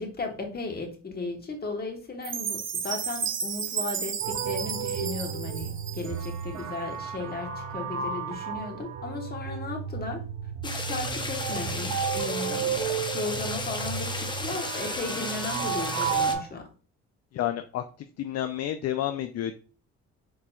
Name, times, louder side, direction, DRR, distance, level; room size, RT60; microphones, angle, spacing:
voice 1, 0.0-10.2 10.6-16.6, left 3 dB, 30° left, 3 dB, 1.3 m, -36 dB
Chime, 2.2-6.4, right 7 dB, 40° right, 0.6 m, -33 dB
sound 1, 4.2-16.4, right 7 dB, 75° right, 0.8 m, -33 dB
sound 2, 10.6-16.3, left 2 dB, 15° left, 0.7 m, -34 dB
voice 2, 17.3-17.8 18.2-19.5, left 11 dB, 60° left, 8 dB, 0.4 m, -30 dB
4.2 x 3.8 x 2.3 m, 0.38 s
cardioid pair, 90°, 30 cm